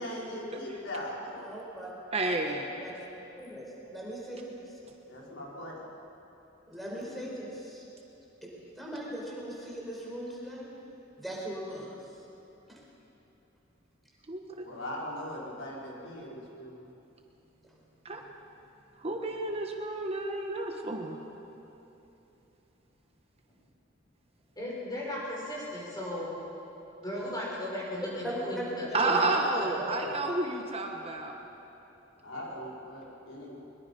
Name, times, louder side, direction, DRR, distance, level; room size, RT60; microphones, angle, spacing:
voice 1, 0.0-1.5 5.1-5.8 14.6-16.9 32.2-33.6, left 1 dB, 85° left, -4 dB, 4.6 m, -40 dB
voice 2, 1.2-1.9 2.5-3.1 3.4-4.8 6.7-7.8 8.8-10.7 11.2-12.2 12.7-12.8 28.2-28.7 29.0-29.1, right 1 dB, ahead, -4 dB, 4.4 m, -39 dB
voice 3, 2.1-2.7 14.3-14.6 18.0-18.2 19.0-21.2 28.9-31.3, right 2 dB, 30° right, 2 dB, 1.3 m, -30 dB
voice 4, 24.6-26.4 27.0-30.1, left 1 dB, 20° left, -5 dB, 6.4 m, -36 dB
22.0 x 22.0 x 5.5 m, 3.0 s
head